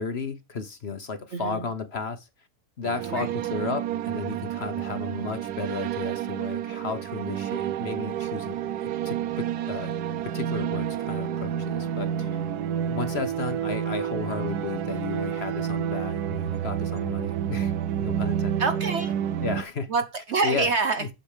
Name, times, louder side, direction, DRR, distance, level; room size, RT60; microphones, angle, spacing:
voice 1, 0.0-2.3 2.8-8.6 9.0-9.9 10.2-12.4 12.9-17.7 18.0-18.6 19.4-19.9 20.4-20.7 21.0-21.1, left 4 dB, 45° left, 1.1 m, -33 dB
voice 2, 1.3-1.7 3.1-3.3 18.6-19.2 19.9-21.1, right 4 dB, 50° right, 0.9 m, -26 dB
sound 1, 2.8-19.6, right 9 dB, 75° right, 1.2 m, -29 dB
8.0 x 7.2 x 5.0 m
omnidirectional pair, 1.7 m